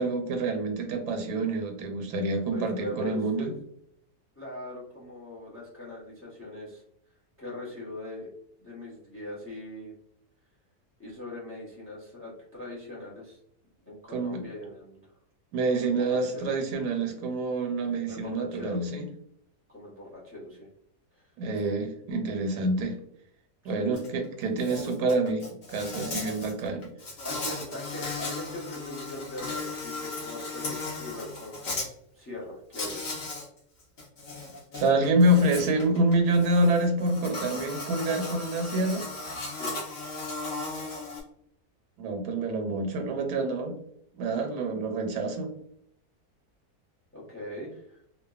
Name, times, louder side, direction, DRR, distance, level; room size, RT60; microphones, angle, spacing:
voice 1, 0.0-3.5 14.1-14.4 15.5-19.1 21.4-23.0 23.6-26.9 34.7-39.1 42.0-43.7 44.2-45.5, right 2 dB, 85° right, 4 dB, 1.2 m, -27 dB
voice 2, 2.5-3.5 4.4-6.8 7.4-8.3 8.6-9.9 11.0-13.4 13.9-15.0 15.7-16.5 18.1-18.8 19.7-20.7 21.1-21.3 23.6-23.9 27.2-31.6 32.1-33.2 39.5-39.8 47.1-48.0, left 1 dB, 15° left, -5 dB, 0.5 m, -41 dB
Insect, 24.0-24.1 24.4-31.9 32.7-33.5 33.8-41.2, left 3 dB, 55° left, 0.8 m, -36 dB
2.7 x 2.2 x 2.3 m, 0.71 s
omnidirectional pair, 1.6 m